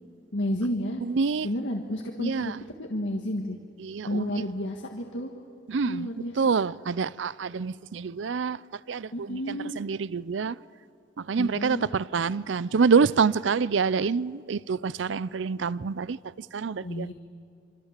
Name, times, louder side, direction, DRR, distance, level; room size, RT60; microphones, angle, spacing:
voice 1, 0.3-1.0 1.4-2.5 2.8-3.6 4.0-5.3 5.8-6.6 9.1-9.7 11.4-11.9 16.8-17.1, equal, 90° left, 1.7 m, -31 dB
voice 2, 1.0-1.5 2.2-2.6 3.8-4.4 5.7-6.1 6.4-10.6 11.2-17.1, right 5 dB, 90° right, 0.5 m, -27 dB
26.5 x 24.5 x 7.5 m
head